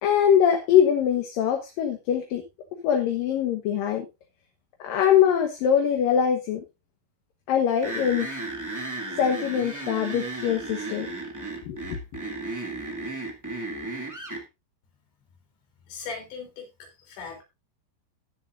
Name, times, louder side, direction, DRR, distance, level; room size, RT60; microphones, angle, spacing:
voice 1, 0.0-2.4 2.8-4.1 4.8-6.6 7.5-8.3 9.2-11.1 11.6-12.0, left 9 dB, 65° left, 4 dB, 2.5 m, -23 dB
sound 1, 7.8-14.4, right 2 dB, 10° right, 0.9 m, -34 dB
voice 2, 15.9-17.4, left 5 dB, 90° left, 2 dB, 5.6 m, -39 dB
19.0 x 7.4 x 2.6 m, 0.25 s
omnidirectional pair, 5.0 m